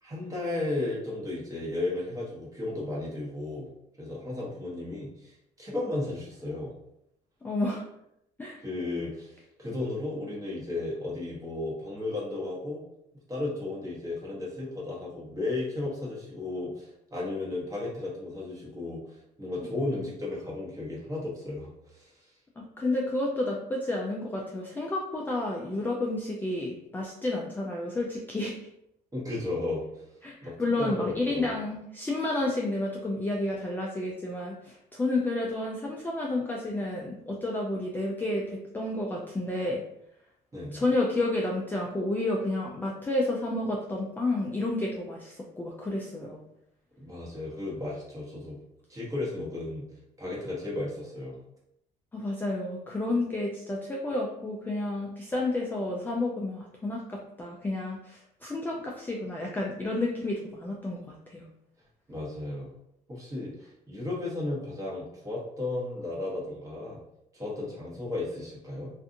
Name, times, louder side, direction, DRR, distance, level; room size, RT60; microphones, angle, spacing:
voice 1, 0.0-3.7 4.0-6.7 8.6-12.8 13.3-22.1 29.1-30.0 30.4-31.5 40.5-40.8 47.0-48.6 48.9-49.8 50.2-51.4 62.1-62.7 63.1-67.0 67.3-68.9, left 2 dB, 20° right, -5 dB, 1.1 m, -34 dB
voice 2, 7.4-7.8 8.4-8.6 22.6-28.5 30.2-39.8 40.7-46.4 52.1-61.0 61.3-61.4, left 2 dB, 10° left, -2 dB, 0.3 m, -30 dB
2.5 x 2.5 x 2.5 m, 0.79 s
cardioid pair, 110°, 17 cm